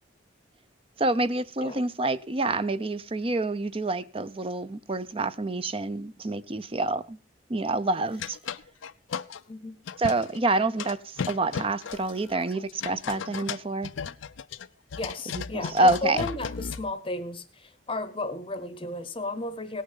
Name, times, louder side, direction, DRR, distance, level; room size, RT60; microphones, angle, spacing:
voice 1, 1.0-7.2 7.5-8.4 10.0-13.9 15.3-16.2, right 2 dB, 30° right, 0.6 m, -27 dB
sound 1, 8.1-9.4 9.9-10.4 10.8-16.9, left 6 dB, 80° left, 0.5 m, -35 dB
voice 2, 9.5-9.8 14.9-19.8, left 2 dB, 25° left, 0.8 m, -34 dB
18.0 x 6.6 x 5.5 m
head